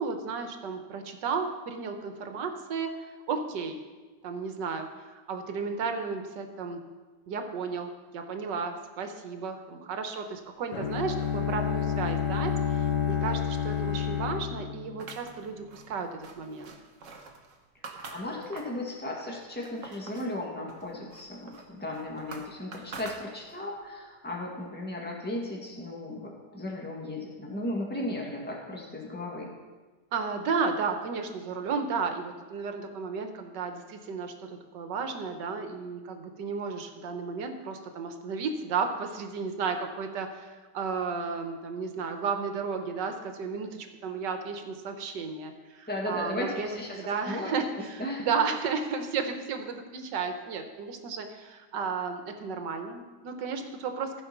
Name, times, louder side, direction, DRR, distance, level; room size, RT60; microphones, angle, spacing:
voice 1, 0.0-3.8 4.2-6.8 7.3-16.7 30.1-54.2, right 5 dB, 80° right, 6 dB, 1.6 m, -33 dB
Bowed string instrument, 10.7-15.7, left 8 dB, 75° left, 1.8 m, -30 dB
sound 1, 15.0-18.8 19.3-20.3 20.7-23.7, right 4 dB, 50° right, 1.3 m, -46 dB
voice 2, 17.8-29.5 45.9-47.5 48.0-48.3, left 1 dB, 5° left, -2 dB, 1.7 m, -36 dB
15.5 x 5.2 x 5.9 m, 1.3 s
omnidirectional pair, 1.9 m